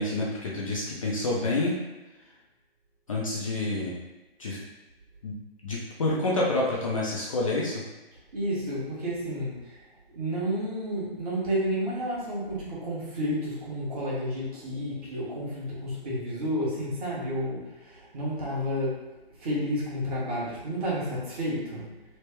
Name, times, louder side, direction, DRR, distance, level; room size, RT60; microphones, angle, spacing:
voice 1, 0.0-1.8 3.1-3.9 4.4-4.6 5.2-5.4 5.6-7.8, left 2 dB, 35° left, -4 dB, 0.4 m, -28 dB
voice 2, 8.3-9.8 10.1-19.0 19.4-22.0, equal, 40° right, -7 dB, 1.2 m, -31 dB
3.2 x 2.1 x 3.3 m, 1.1 s
figure-of-eight pair, 140°, 31 cm